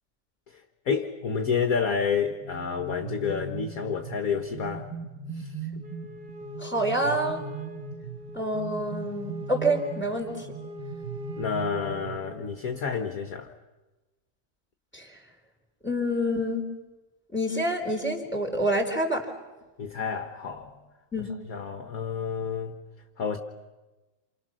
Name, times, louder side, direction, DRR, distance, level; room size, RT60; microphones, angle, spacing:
voice 1, 0.5-4.9 5.3-5.5 11.4-13.5 19.8-20.8 21.2-22.8 23.2-23.4, left 6 dB, 50° left, 6 dB, 1.5 m, -30 dB
sound 1, 2.3-12.8, right 4 dB, 75° right, 2.5 m, -39 dB
Wind instrument woodwind instrument, 5.8-12.6, equal, 60° right, 2.0 m, -43 dB
voice 2, 6.6-7.4 8.3-10.5 14.9-15.2 15.8-16.7 17.3-19.3 21.1-21.3, right 1 dB, 5° left, 4 dB, 4.0 m, -27 dB
29.0 x 28.5 x 6.3 m, 1.1 s
omnidirectional pair, 2.2 m